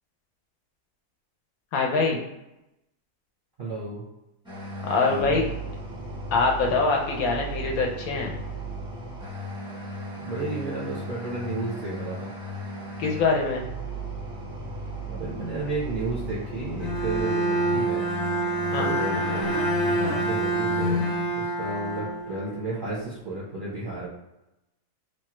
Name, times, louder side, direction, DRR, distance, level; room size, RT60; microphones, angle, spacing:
voice 1, 1.7-2.2 4.8-5.4 6.3-8.3 13.0-13.6 18.7-18.9, left 4 dB, 70° left, 0 dB, 0.9 m, -24 dB
voice 2, 3.6-4.0 5.0-5.5 10.2-12.3 15.1-18.1 18.8-21.0 21.4-24.1, right 2 dB, 50° right, -7 dB, 0.6 m, -32 dB
sound 1, 4.4-21.2, right 1 dB, 5° right, 0.4 m, -36 dB
Bowed string instrument, 16.8-22.8, right 1 dB, 45° left, 0.7 m, -26 dB
3.0 x 2.2 x 2.9 m, 0.90 s
omnidirectional pair, 1.7 m